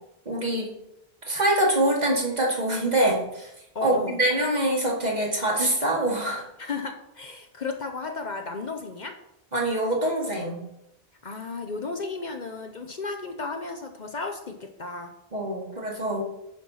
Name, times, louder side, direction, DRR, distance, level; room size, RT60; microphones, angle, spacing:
voice 1, 0.3-0.7 1.3-3.5 3.8-6.5 9.5-10.6 15.3-16.2, right 1 dB, 45° right, -2 dB, 2.3 m, -24 dB
voice 2, 3.7-4.2 6.6-9.1 11.2-15.1, left 4 dB, 50° left, 5 dB, 0.9 m, -34 dB
10.5 x 4.5 x 5.6 m, 0.83 s
omnidirectional pair, 1.0 m